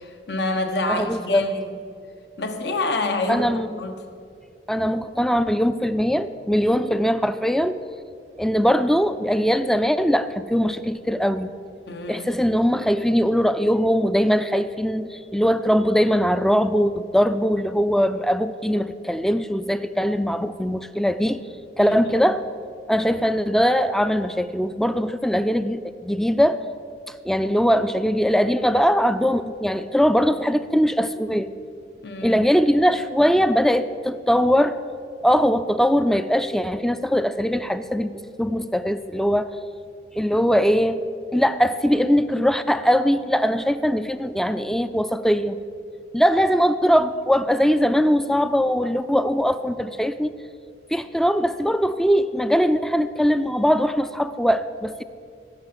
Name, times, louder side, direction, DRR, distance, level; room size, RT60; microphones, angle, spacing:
voice 1, 0.0-1.8 2.4-3.5 3.8-3.9 11.9-12.3 21.8-22.3 32.0-32.4, left 2 dB, 70° left, 5 dB, 1.3 m, -27 dB
voice 2, 0.9-1.4 3.3-3.8 4.7-7.8 8.4-11.5 12.1-21.4 21.8-22.4 22.9-26.6 27.1-31.5 32.2-34.8 35.2-39.5 40.1-41.0 41.3-45.6 46.1-50.3 50.9-55.0, equal, ahead, 12 dB, 0.4 m, -21 dB
16.5 x 5.7 x 8.7 m, 2.2 s
head